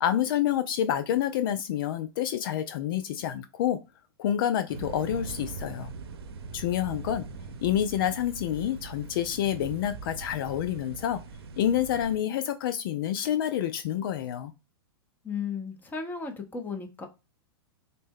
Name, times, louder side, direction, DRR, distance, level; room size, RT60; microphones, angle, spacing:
voice 1, 0.0-3.8 4.2-5.9 6.5-7.3 7.6-11.2 11.6-14.5, left 10 dB, 60° left, 0.4 m, -28 dB
sound 1, 4.7-12.2, right 4 dB, 70° right, 0.6 m, -41 dB
voice 2, 15.2-17.1, left 5 dB, 15° left, 0.7 m, -35 dB
3.9 x 2.1 x 3.6 m
hypercardioid pair, 115°, 13 cm